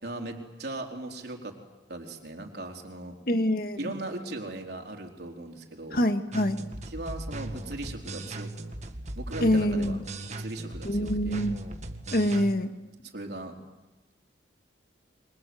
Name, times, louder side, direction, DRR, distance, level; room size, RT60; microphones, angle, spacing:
voice 1, 0.0-1.6 1.9-3.2 3.8-6.0 6.8-8.5 9.2-10.0 10.3-11.4 13.0-13.5, right 2 dB, 60° right, 2 dB, 4.1 m, -38 dB
voice 2, 3.3-3.9 5.9-6.6 9.4-10.0 10.8-11.6 12.1-12.7, equal, 50° left, 7 dB, 2.0 m, -25 dB
sound 1, 6.3-12.5, right 1 dB, 40° right, 1.8 m, -38 dB
28.5 x 25.0 x 7.9 m, 1.1 s
head